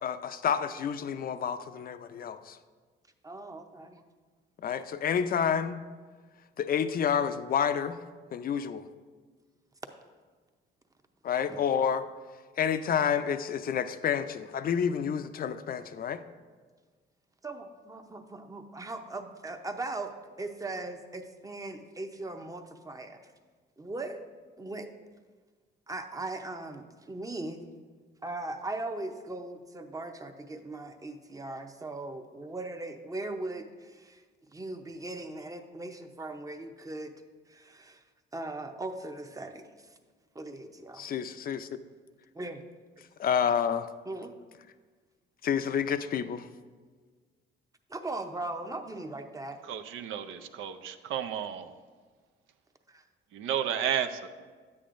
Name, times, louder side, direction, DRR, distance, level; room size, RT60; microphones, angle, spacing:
voice 1, 0.0-2.6 4.6-5.8 6.6-8.0 8.3-8.9 11.2-12.0 12.6-16.2 41.0-41.7 43.2-43.9 45.4-46.5, left 7 dB, 50° left, 0.5 m, -29 dB
voice 2, 3.2-4.0 11.5-11.6 17.4-23.2 23.8-24.2 24.6-24.9 25.9-27.6 28.2-37.1 37.5-38.0 38.3-39.7 40.3-41.1 42.3-42.6 44.1-44.3 47.9-49.6 52.9-53.0, right 2 dB, 15° right, 0.6 m, -39 dB
voice 3, 49.6-51.7 53.3-54.4, right 9 dB, 85° right, 0.5 m, -32 dB
9.9 x 8.4 x 2.5 m
cardioid pair, 90°, 20 cm